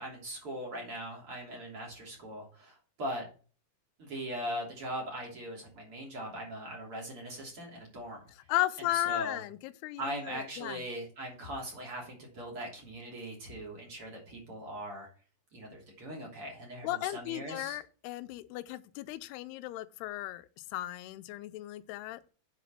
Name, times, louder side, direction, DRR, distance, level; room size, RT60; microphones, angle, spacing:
voice 1, 0.0-3.3 4.0-8.2 8.9-9.4 10.0-15.1 15.5-17.8, equal, 35° right, 3.7 m, -40 dB
voice 2, 8.5-10.8 16.8-22.2, left 15 dB, 90° left, 2.7 m, -35 dB
8.0 x 5.9 x 5.9 m
omnidirectional pair, 4.5 m